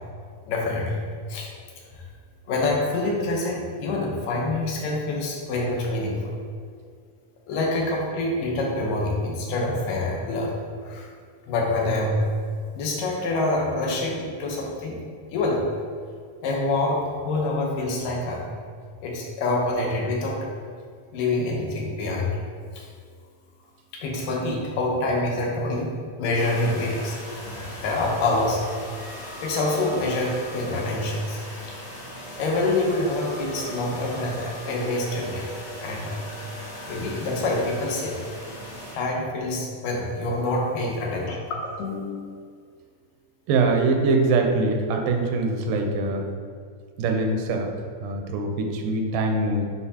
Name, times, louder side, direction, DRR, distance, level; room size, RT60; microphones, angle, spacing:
voice 1, 0.5-1.0 1.3-1.5 2.5-6.3 7.5-10.5 10.8-11.1 11.5-12.2 12.7-15.0 15.3-15.6 16.4-18.4 19.0-20.4 21.1-22.3 22.7-22.8 23.9-28.6 29.4-31.4 32.4-35.5 35.8-36.2 36.9-38.2 38.9-42.3, left 2 dB, 90° left, -2 dB, 2.6 m, -26 dB
sound 1, 26.4-39.0, equal, 55° left, 2.2 m, -39 dB
voice 2, 43.5-46.2 47.0-47.7 48.0-49.6, right 3 dB, 85° right, 3 dB, 2.2 m, -23 dB
8.6 x 4.4 x 2.8 m, 2.1 s
omnidirectional pair, 3.7 m